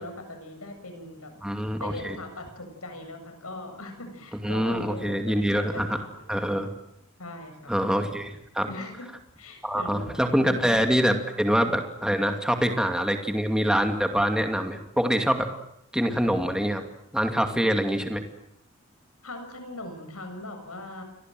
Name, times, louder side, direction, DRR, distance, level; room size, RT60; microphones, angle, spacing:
voice 1, 0.0-1.5 1.8-6.6 7.2-7.7 8.7-9.1 9.4-10.6 11.3-11.5 17.5-17.7 19.2-21.0, left 2 dB, 85° left, 7 dB, 7.3 m, -40 dB
voice 2, 1.4-2.2 4.4-6.0 6.3-6.7 7.7-8.7 9.6-15.5 15.9-16.8 17.1-18.2, equal, 5° right, 5 dB, 2.5 m, -25 dB
30.0 x 24.0 x 7.9 m, 0.78 s
head